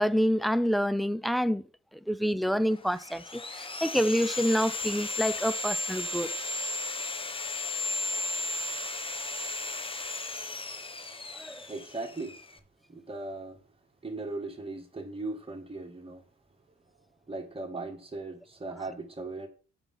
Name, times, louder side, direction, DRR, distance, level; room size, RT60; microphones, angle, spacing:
voice 1, 0.0-1.6 2.1-6.3 11.4-11.7, equal, ahead, 0.5 m, -27 dB
Sawing, 2.7-12.6, left 2 dB, 20° left, 0.9 m, -35 dB
voice 2, 11.7-12.4 12.9-13.6 14.0-16.2 17.3-19.5, right 2 dB, 20° right, 2.1 m, -38 dB
6.8 x 5.8 x 5.7 m
cardioid pair, 90°, 30 cm